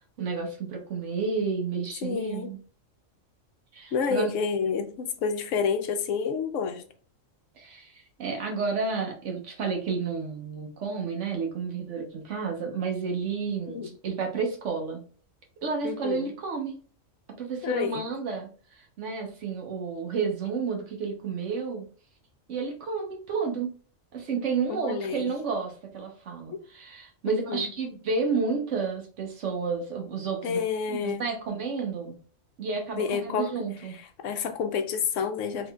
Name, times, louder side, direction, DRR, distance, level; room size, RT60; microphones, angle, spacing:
voice 1, 0.2-2.6 3.7-4.3 7.6-15.0 15.6-16.8 17.4-21.8 22.5-23.7 24.1-30.6 30.9-32.2 32.6-34.0, right 5 dB, 65° right, 1.1 m, -31 dB
voice 2, 2.0-2.5 3.9-6.8 13.5-13.9 15.8-16.2 17.6-18.0 24.7-25.3 26.5-26.6 27.3-27.7 30.4-31.3 33.0-33.5 34.2-35.7, left 6 dB, 70° left, 0.9 m, -29 dB
3.7 x 3.0 x 2.2 m
omnidirectional pair, 1.4 m